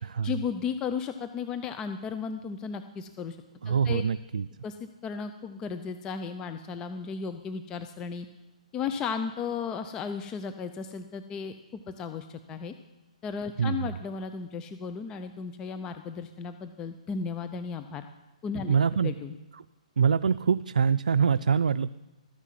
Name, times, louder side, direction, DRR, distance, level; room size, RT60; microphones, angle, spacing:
voice 1, 0.2-3.4 3.7-4.0 4.6-8.3 8.7-11.5 11.9-12.7 13.2-18.1 18.4-19.4, left 6 dB, 15° left, 9 dB, 0.6 m, -35 dB
voice 2, 3.6-4.5 13.6-13.9 18.7-19.2 20.0-21.9, right 6 dB, 85° right, 13 dB, 0.4 m, -24 dB
13.5 x 10.0 x 7.5 m, 1.1 s
hypercardioid pair, 155°, 4 cm